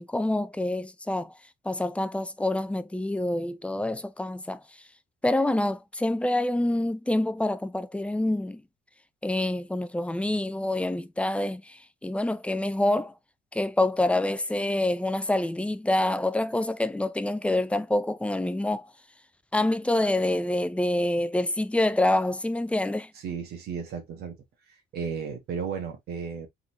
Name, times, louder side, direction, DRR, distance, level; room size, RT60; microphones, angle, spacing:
voice 1, 0.0-1.3 1.7-4.6 5.2-8.6 9.2-11.8 12.0-13.1 13.5-18.9 19.5-23.1, left 1 dB, 5° left, 0.5 m, -26 dB
voice 2, 23.1-24.4 24.9-26.5, right 6 dB, 70° right, 1.7 m, -34 dB
3.8 x 3.8 x 3.0 m
cardioid pair, 110°, 17 cm